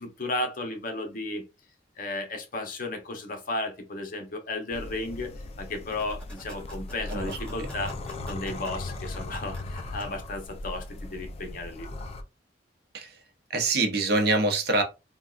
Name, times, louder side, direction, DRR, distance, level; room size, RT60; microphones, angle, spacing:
voice 1, 0.0-1.4 2.0-5.3 5.6-7.9 8.2-11.9, left 2 dB, 50° left, 0.7 m, -34 dB
sound 1, 4.7-12.2, left 2 dB, 35° left, 0.3 m, -38 dB
sound 2, 5.8-10.0, left 2 dB, 5° left, 1.3 m, -46 dB
voice 2, 13.5-14.8, right 2 dB, 60° right, 0.7 m, -25 dB
3.5 x 2.2 x 2.3 m
head